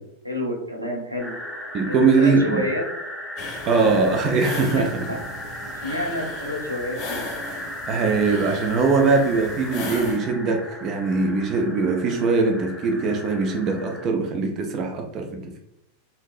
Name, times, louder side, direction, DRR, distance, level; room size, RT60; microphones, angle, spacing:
voice 1, 0.2-1.3 1.9-2.8 5.1-5.2 5.7-7.3, left 1 dB, 85° right, 0.7 m, -28 dB
sound 1, 1.2-14.1, left 1 dB, ahead, 0.7 m, -36 dB
voice 2, 1.7-2.7 3.7-5.1 7.9-15.6, right 4 dB, 35° right, 0.4 m, -21 dB
sound 2, 3.4-10.2, left 2 dB, 40° left, 0.7 m, -37 dB
3.7 x 2.7 x 2.4 m
figure-of-eight pair, 90°, 0 cm